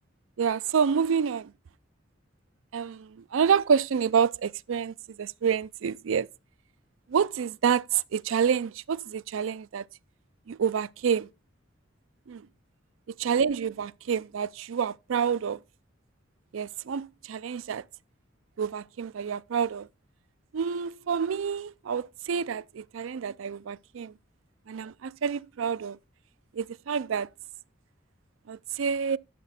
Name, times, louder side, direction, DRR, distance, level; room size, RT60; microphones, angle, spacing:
voice 1, 0.4-1.5 2.7-6.3 7.1-9.8 10.5-11.3 12.3-12.4 13.2-15.6 16.5-17.8 18.6-19.9 20.5-24.1 24.7-26.0 26.5-27.3 28.5-29.2, right 7 dB, 85° right, 0.4 m, -28 dB
12.0 x 6.8 x 4.2 m
head